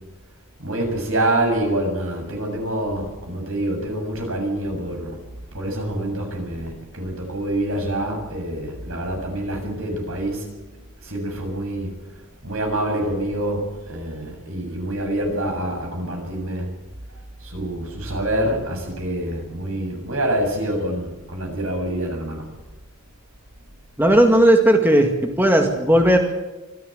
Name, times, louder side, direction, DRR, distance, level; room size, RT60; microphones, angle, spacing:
voice 1, 0.6-5.2 5.5-10.5 11.0-11.9 12.4-16.7 17.4-22.4, right 1 dB, 75° right, 2 dB, 7.4 m, -26 dB
voice 2, 24.0-26.2, right 1 dB, 10° right, 3 dB, 2.0 m, -15 dB
25.5 x 14.0 x 8.0 m, 1.1 s
head